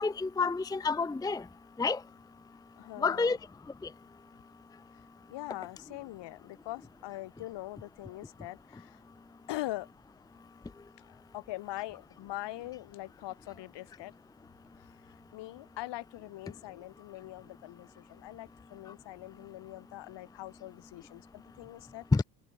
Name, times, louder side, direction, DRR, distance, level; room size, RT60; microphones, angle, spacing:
voice 1, 0.0-1.4 1.8-2.0 3.0-3.4 22.1-22.2, left 4 dB, 10° left, 0.6 m, -28 dB
voice 2, 2.8-3.3 5.3-9.0 9.5-9.9 11.0-14.1 14.8-22.0, left 17 dB, 65° left, 6.3 m, -42 dB
supercardioid pair, 80°, 45 cm